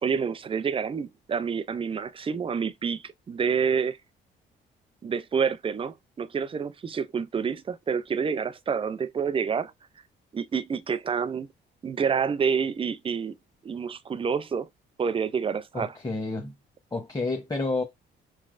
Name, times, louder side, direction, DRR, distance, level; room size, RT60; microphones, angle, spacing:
voice 1, 0.0-4.0 5.0-9.7 10.3-11.5 11.8-13.4 13.6-14.7 15.0-15.9, right 6 dB, 25° right, 0.4 m, -28 dB
voice 2, 15.7-16.5 16.9-17.8, left 3 dB, 20° left, 0.8 m, -30 dB
5.8 x 3.2 x 2.5 m
cardioid pair, 90°, 20 cm